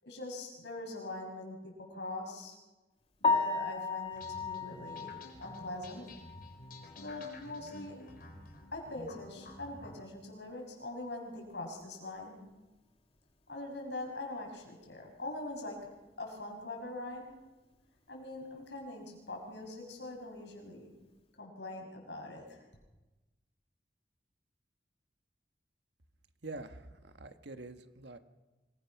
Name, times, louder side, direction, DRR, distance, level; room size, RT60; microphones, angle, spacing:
voice 1, 0.0-2.6 3.2-6.1 7.0-8.0 8.7-12.5 13.5-17.4 18.1-20.9 21.4-22.6, left 2 dB, 80° left, 1 dB, 6.5 m, -43 dB
Piano, 3.2-7.2 7.6-7.7 8.2-8.3 8.6-8.7 11.8-11.9 20.4-20.6, left 3 dB, 35° left, 2.4 m, -35 dB
sound 1, 4.1-10.0, left 1 dB, 55° left, 4.2 m, -51 dB
voice 2, 26.4-28.2, right 2 dB, 80° right, 8 dB, 1.5 m, -46 dB
26.0 x 21.5 x 6.1 m, 1.2 s
head